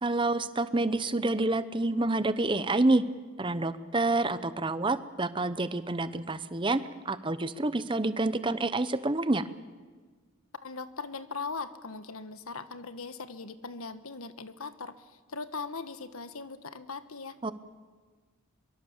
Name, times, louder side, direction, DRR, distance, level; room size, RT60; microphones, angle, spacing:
voice 1, 0.0-3.0 3.4-9.4 17.4-17.5, right 2 dB, 25° right, 14 dB, 0.8 m, -28 dB
voice 2, 10.6-17.4, left 4 dB, 85° left, 12 dB, 1.3 m, -40 dB
23.0 x 23.0 x 7.2 m, 1.5 s
head